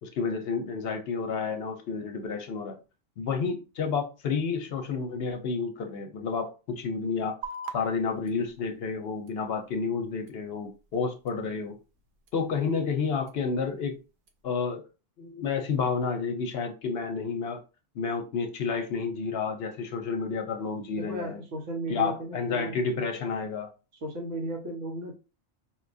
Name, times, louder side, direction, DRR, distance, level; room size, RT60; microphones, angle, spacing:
voice 1, 0.0-2.8 3.2-7.4 7.7-11.8 12.3-13.9 14.4-14.8 15.2-17.6 18.0-21.4 21.9-23.7, left 5 dB, 65° left, 5 dB, 0.8 m, -30 dB
sound 1, 7.4-14.4, right 3 dB, 60° right, 0.6 m, -47 dB
voice 2, 20.9-23.0 23.9-25.1, right 1 dB, 80° right, 1 dB, 1.3 m, -35 dB
4.1 x 2.2 x 2.5 m, 0.32 s
omnidirectional pair, 1.2 m